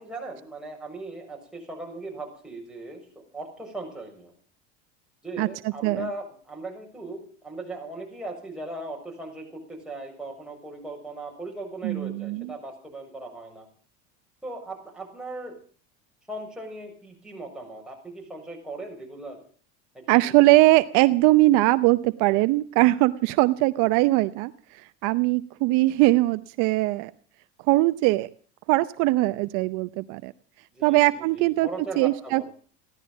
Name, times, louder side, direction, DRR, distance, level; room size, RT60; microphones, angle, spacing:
voice 1, 0.0-3.0 3.3-4.3 5.2-13.7 14.4-15.6 16.3-19.4 19.9-20.3 30.7-32.5, right 2 dB, ahead, -1 dB, 7.0 m, -38 dB
voice 2, 11.8-12.5 20.1-27.1 27.7-28.3 28.7-30.3 30.8-31.7 32.0-32.5, right 19 dB, 65° right, 13 dB, 0.8 m, -21 dB
16.0 x 12.5 x 7.3 m, 0.44 s
supercardioid pair, 110°, 33 cm